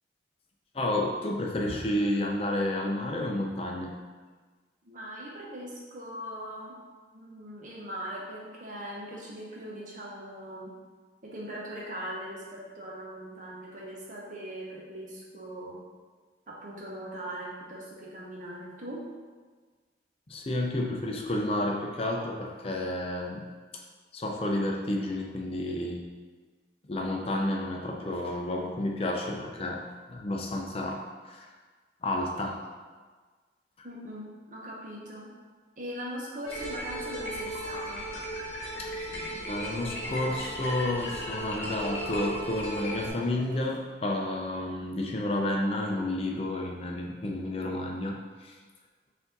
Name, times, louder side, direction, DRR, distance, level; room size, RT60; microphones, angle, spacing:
voice 1, 0.7-3.9 20.3-23.4 24.1-26.0 26.9-29.8 30.1-31.5 32.0-32.6 38.8-38.9 39.4-48.5, left 1 dB, 30° left, 1 dB, 0.4 m, -31 dB
voice 2, 4.9-6.7 7.1-10.7 11.2-15.8 16.5-19.0 33.8-35.3 35.8-38.1, right 1 dB, 45° right, -4 dB, 0.9 m, -40 dB
sound 1, 36.4-43.1, equal, 60° left, 1.0 m, -36 dB
sound 2, 38.7-43.8, right 1 dB, 25° right, 0.5 m, -48 dB
4.7 x 2.7 x 3.8 m, 1.5 s
head